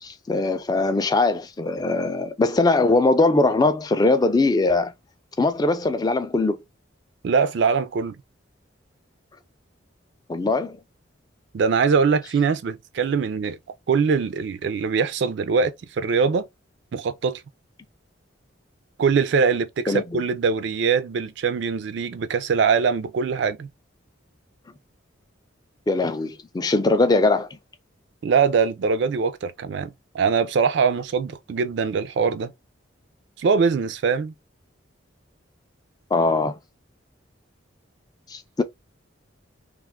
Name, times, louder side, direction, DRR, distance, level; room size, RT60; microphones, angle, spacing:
voice 1, 0.0-4.9 5.4-6.6 10.3-10.8 19.9-20.2 25.9-27.5 36.1-36.6 38.3-38.6, left 2 dB, 20° left, 0.3 m, -21 dB
voice 2, 7.2-8.2 11.5-13.6 13.9-16.4 16.9-17.4 19.0-23.7 28.2-32.5 33.4-34.3, right 5 dB, 60° right, 0.3 m, -22 dB
2.5 x 2.3 x 3.5 m
head